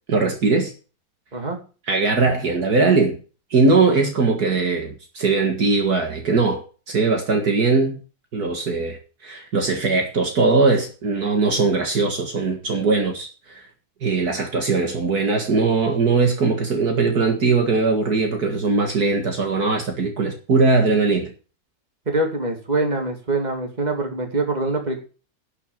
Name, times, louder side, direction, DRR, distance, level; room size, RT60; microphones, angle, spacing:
voice 1, 0.1-0.7 1.9-3.2 3.5-8.0 8.3-9.0 9.2-13.6 14.0-21.3, right 4 dB, 60° right, 2.3 m, -20 dB
voice 2, 22.1-25.0, right 2 dB, 25° right, 2.8 m, -24 dB
12.0 x 6.7 x 7.2 m
omnidirectional pair, 1.9 m